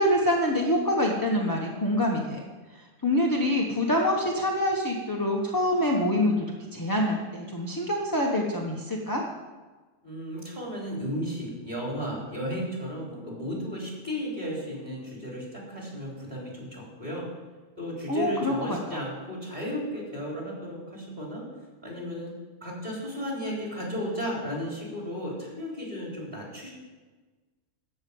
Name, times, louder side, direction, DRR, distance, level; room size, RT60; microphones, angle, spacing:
voice 1, 0.0-2.4 2.7-9.2 18.1-19.0, left 1 dB, 15° left, -1 dB, 0.9 m, -26 dB
voice 2, 10.0-17.3 17.8-21.5 21.8-22.3 22.6-26.7, equal, 25° right, -3 dB, 3.9 m, -34 dB
13.0 x 5.5 x 8.4 m, 1.3 s
omnidirectional pair, 1.7 m